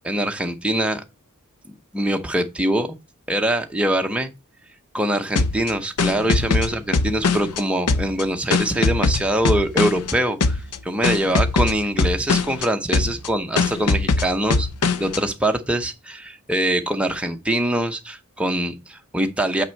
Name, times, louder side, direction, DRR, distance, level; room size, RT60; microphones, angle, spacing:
voice 1, 0.0-1.0 1.9-3.0 3.3-4.3 4.9-14.7 15.0-19.6, right 1 dB, 5° right, 0.7 m, -23 dB
sound 1, 5.4-7.6 7.9-10.1 10.4-10.8 11.0-12.7 12.9-13.3 13.6-15.2, left 3 dB, 90° left, 0.7 m, -21 dB
6.1 x 5.2 x 4.5 m
head